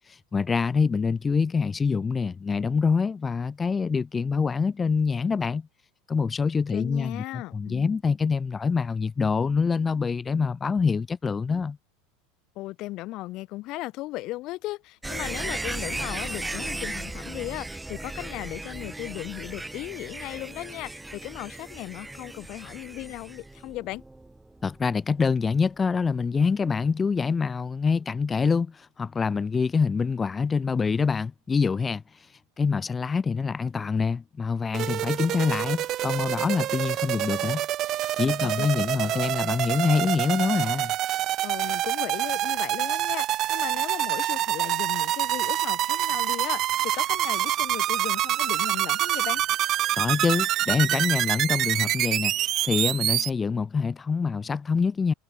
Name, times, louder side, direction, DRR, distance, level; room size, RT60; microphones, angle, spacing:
voice 1, 0.1-5.7 6.1-11.8 24.6-32.3 32.6-37.6 38.2-40.9 49.9-52.3 52.6-55.1, left 5 dB, 20° left, 2.9 m, -25 dB
voice 2, 6.7-7.9 12.6-24.0 38.6-38.7 39.0-39.2 41.4-49.4, left 18 dB, 50° left, 3.4 m, -36 dB
sound 1, 15.0-25.8 26.1-26.2, right 2 dB, 10° right, 1.6 m, -36 dB
sound 2, 34.7-53.3, right 13 dB, 45° right, 3.4 m, -26 dB
supercardioid pair, 115°, 0 cm